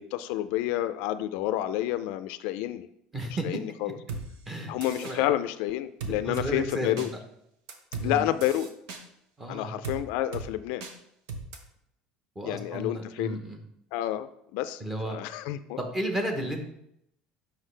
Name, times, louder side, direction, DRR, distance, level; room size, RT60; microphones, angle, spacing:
voice 1, 0.0-2.9 3.4-4.0 4.7-7.1 8.0-8.7 9.5-10.8 12.4-13.4 13.9-15.8, left 13 dB, 70° left, 12 dB, 0.4 m, -29 dB
voice 2, 3.1-3.5 3.8-3.9 4.5-4.7 5.0-5.3 6.2-7.2 8.0-8.2 9.4-9.8 12.3-13.6 14.8-15.2 15.8-16.6, right 1 dB, 10° right, 3 dB, 0.9 m, -33 dB
sound 1, 4.1-4.2 4.8-5.2 6.0-6.5 7.0-7.1 7.7-8.1 8.4-9.0 9.8-10.0 10.3-10.5 10.8-10.9 11.3-11.6, right 4 dB, 90° right, 1.0 m, -36 dB
7.4 x 5.6 x 3.3 m, 0.76 s
cardioid pair, 170°, 2 cm